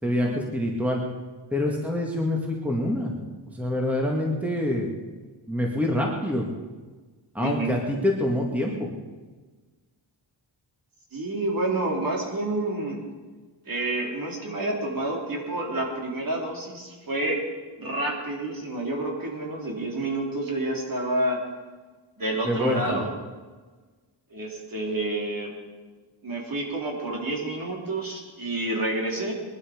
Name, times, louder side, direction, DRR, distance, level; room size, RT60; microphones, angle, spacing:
voice 1, 0.0-1.0 1.5-3.1 3.5-4.9 5.5-6.5 7.3-8.9 22.4-23.0, left 1 dB, 5° right, 0 dB, 2.1 m, -26 dB
voice 2, 7.4-7.8 11.1-13.0 13.7-17.4 17.8-21.4 22.2-23.1 24.3-25.5 26.2-29.3, right 2 dB, 45° right, -1 dB, 3.8 m, -29 dB
21.0 x 11.5 x 5.2 m, 1.4 s
wide cardioid pair, 130°, 46 cm